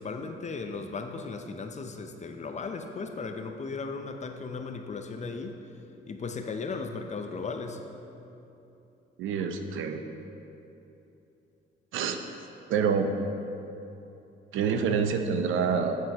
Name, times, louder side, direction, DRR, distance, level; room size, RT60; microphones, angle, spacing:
voice 1, 0.0-5.6 6.1-7.8, left 4 dB, 35° left, 6 dB, 0.6 m, -36 dB
voice 2, 9.2-10.0 11.9-12.2 12.7-13.1 14.5-16.0, right 6 dB, 85° right, 6 dB, 0.6 m, -27 dB
9.1 x 7.5 x 2.9 m, 2.9 s
cardioid pair, 90°, 20 cm